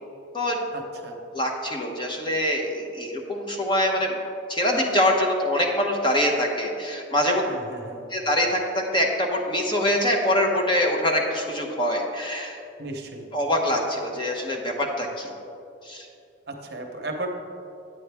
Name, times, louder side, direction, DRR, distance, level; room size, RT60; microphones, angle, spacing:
voice 1, 0.7-1.2 7.5-8.1 12.8-13.2 16.5-17.3, right 2 dB, 55° right, 3 dB, 0.8 m, -35 dB
voice 2, 1.3-4.2 4.5-7.4 8.1-12.6 13.3-15.3 15.8-16.1, left 1 dB, 25° left, 1 dB, 0.9 m, -24 dB
9.1 x 8.8 x 3.4 m, 2.6 s
head